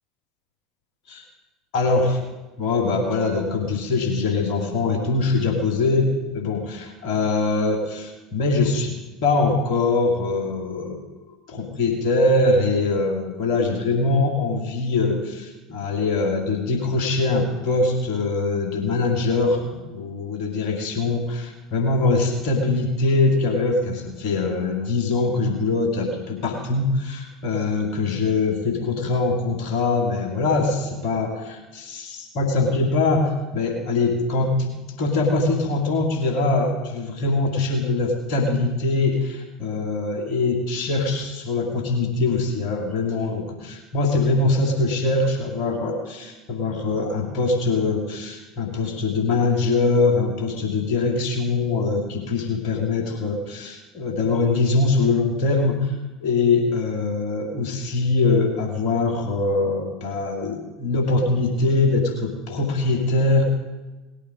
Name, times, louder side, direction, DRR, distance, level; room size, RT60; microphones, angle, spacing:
voice 1, 1.7-2.2 2.6-9.0 9.2-34.7 35.0-63.4, left 3 dB, 55° left, 1 dB, 2.6 m, -23 dB
19.0 x 8.4 x 5.2 m, 1.1 s
figure-of-eight pair, 70°, 0 cm